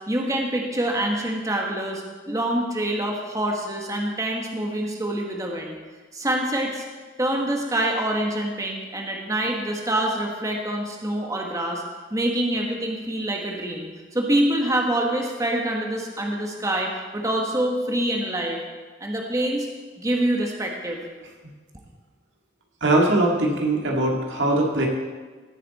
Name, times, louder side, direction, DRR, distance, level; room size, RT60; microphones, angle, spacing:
voice 1, 0.1-5.7 6.1-6.8 7.2-11.8 12.1-18.6 19.0-19.7 20.0-21.0, right 1 dB, 20° right, 0 dB, 1.3 m, -26 dB
voice 2, 22.8-24.9, right 2 dB, 85° right, 0 dB, 2.0 m, -21 dB
17.0 x 8.3 x 4.1 m, 1.4 s
head